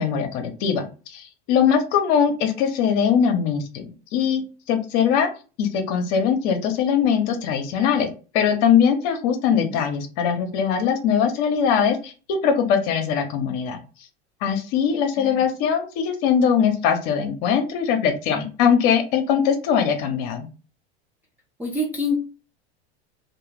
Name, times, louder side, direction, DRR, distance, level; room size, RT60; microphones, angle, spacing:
voice 1, 0.0-5.3 5.6-8.1 8.3-13.8 14.4-20.5, left 7 dB, 55° left, 6 dB, 0.7 m, -21 dB
voice 2, 21.6-22.2, left 2 dB, 5° right, -2 dB, 0.3 m, -27 dB
2.3 x 2.2 x 3.1 m, 0.35 s
hypercardioid pair, 105°, 32 cm